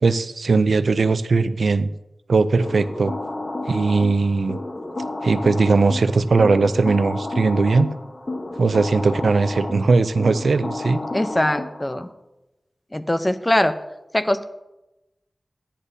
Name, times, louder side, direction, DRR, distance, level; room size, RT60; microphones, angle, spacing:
voice 1, 0.0-1.9 2.3-3.1 3.7-4.6 5.2-7.9 8.6-11.0, right 4 dB, 80° right, 12 dB, 0.4 m, -19 dB
sound 1, 2.6-12.1, left 2 dB, 40° left, 1.0 m, -31 dB
voice 2, 11.1-12.1 12.9-13.8 14.1-14.4, left 1 dB, 20° left, 10 dB, 0.7 m, -21 dB
15.0 x 10.0 x 2.7 m, 0.98 s
wide cardioid pair, 55°, 0 cm